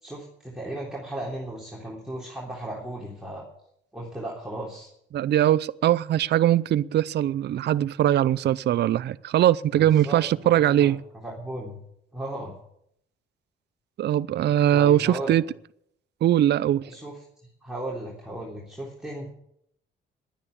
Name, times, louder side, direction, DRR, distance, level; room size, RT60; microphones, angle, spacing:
voice 1, 0.0-3.5 3.9-4.9 9.7-11.8 12.1-12.5 14.7-15.4 16.8-17.1 17.4-19.3, right 1 dB, 5° right, 3.4 m, -36 dB
voice 2, 5.1-11.0 14.0-15.4 16.2-16.9, right 12 dB, 60° right, 0.5 m, -21 dB
11.0 x 9.8 x 8.2 m
cardioid pair, 90°, 20 cm